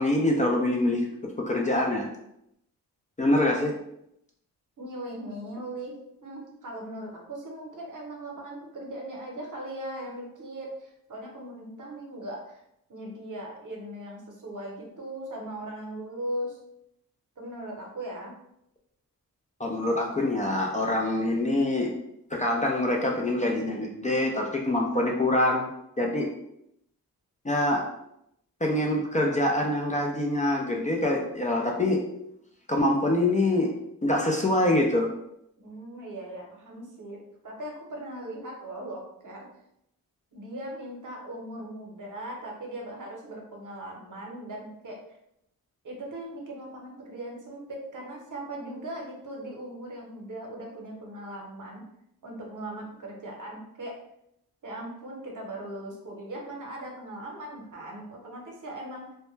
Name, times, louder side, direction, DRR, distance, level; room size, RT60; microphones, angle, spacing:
voice 1, 0.0-2.1 3.2-3.8 19.6-21.9 22.3-25.7 26.0-26.3 27.4-27.9 28.6-32.0 32.7-33.8 34.0-35.1, left 1 dB, 20° left, -1 dB, 0.4 m, -25 dB
voice 2, 4.8-12.6 12.9-16.6 17.4-18.3 35.6-39.5 40.3-45.0 45.8-51.8 52.2-54.0 54.6-59.1, right 1 dB, 55° right, -1 dB, 0.9 m, -39 dB
2.2 x 2.1 x 3.1 m, 0.78 s
cardioid pair, 50°, 38 cm